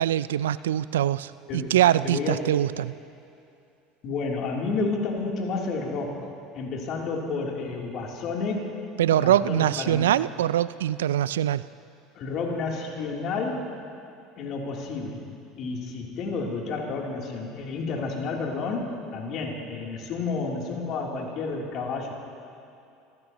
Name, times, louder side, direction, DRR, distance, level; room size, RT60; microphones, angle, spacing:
voice 1, 0.0-2.9 9.0-11.7, right 12 dB, 85° right, 17 dB, 0.3 m, -23 dB
voice 2, 2.0-2.5 4.0-6.3 6.5-8.7 9.1-10.1 12.1-13.7 14.4-15.2 15.6-22.1, left 4 dB, 55° left, -2 dB, 3.2 m, -30 dB
26.0 x 16.0 x 3.0 m, 2.6 s
hypercardioid pair, 85°, 0 cm